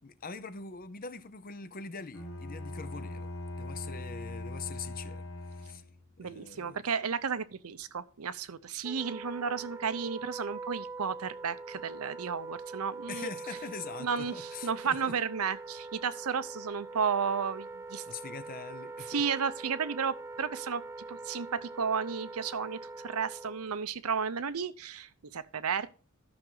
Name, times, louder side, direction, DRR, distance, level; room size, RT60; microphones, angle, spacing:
voice 1, 0.0-5.8 6.2-6.8 13.1-15.1 18.1-19.2, left 5 dB, 40° left, 0.7 m, -43 dB
Bowed string instrument, 2.1-6.1, left 2 dB, 65° left, 1.7 m, -41 dB
voice 2, 6.2-13.3 14.0-18.0 19.1-20.8 21.1-25.9, right 6 dB, 90° right, 0.7 m, -33 dB
Wind instrument woodwind instrument, 8.8-23.7, right 3 dB, 10° right, 0.3 m, -43 dB
12.5 x 6.1 x 3.8 m
head